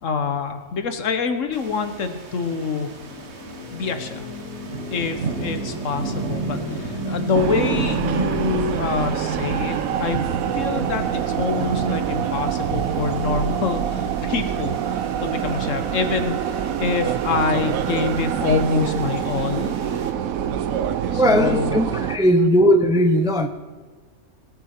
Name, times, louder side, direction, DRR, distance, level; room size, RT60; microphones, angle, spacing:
voice 1, 0.0-2.9 3.7-4.3 4.9-10.2 10.5-19.8 21.1-21.8 22.3-22.5, left 4 dB, 60° left, 8 dB, 1.3 m, -26 dB
sound 1, 1.5-20.1, right 4 dB, 50° right, 1.3 m, -35 dB
sound 2, 2.3-11.2, equal, 90° left, 2.7 m, -34 dB
sound 3, 7.3-22.2, right 9 dB, 75° right, 1.1 m, -25 dB
voice 2, 21.2-23.5, equal, 5° right, 6 dB, 0.3 m, -18 dB
20.0 x 7.1 x 4.4 m, 1.4 s
omnidirectional pair, 1.5 m